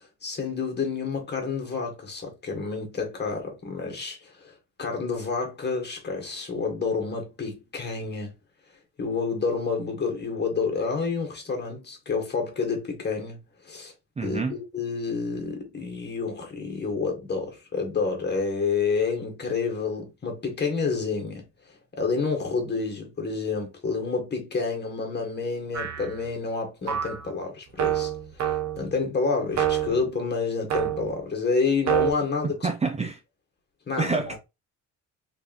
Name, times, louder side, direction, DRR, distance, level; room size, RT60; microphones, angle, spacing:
voice 1, 0.0-4.5 4.8-8.3 9.0-13.4 13.6-13.9 14.2-21.5 21.9-28.1 28.4-28.5 28.8-32.6 33.9-34.2, left 4 dB, 35° left, 1.6 m, -29 dB
voice 2, 14.2-14.6 32.4-33.2 34.0-34.4, right 4 dB, 20° right, 0.5 m, -27 dB
sound 1, 25.7-26.2 26.9-27.2 27.8-28.9 29.5-30.0 30.7-31.2 31.9-32.1, right 10 dB, 60° right, 1.1 m, -26 dB
3.4 x 3.4 x 2.6 m
cardioid pair, 90°, 30 cm